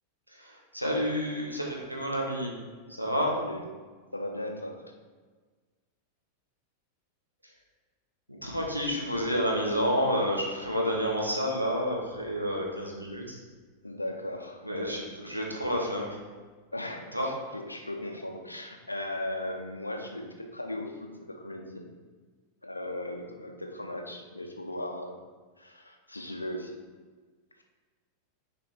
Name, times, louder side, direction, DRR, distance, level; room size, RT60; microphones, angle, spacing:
voice 1, 0.3-2.5 3.0-3.3 8.4-13.4 14.6-16.2 17.1-17.3, equal, 90° right, -2 dB, 1.3 m, -29 dB
voice 2, 3.2-3.6 4.1-4.8 13.8-14.6 16.7-21.8 22.6-25.2 25.6-26.8, left 1 dB, 85° left, 3 dB, 0.7 m, -37 dB
6.7 x 4.3 x 4.6 m, 1.4 s
figure-of-eight pair, 90°, 0 cm